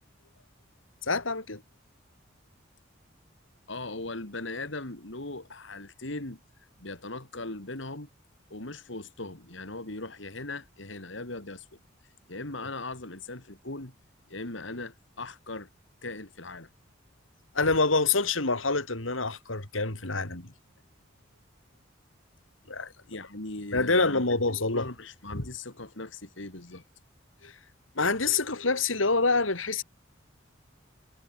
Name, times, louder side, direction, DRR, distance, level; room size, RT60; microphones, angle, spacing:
voice 1, 1.1-1.6 17.5-20.5 22.7-22.9 23.7-24.9 25.3-25.4 27.4-27.5 28.0-29.8, left 3 dB, 90° left, 3.8 m, -26 dB
voice 2, 3.7-8.1 8.5-11.7 12.3-13.9 14.3-15.7 16.0-16.7 23.0-24.4 24.7-26.8, left 2 dB, 70° left, 3.2 m, -39 dB
head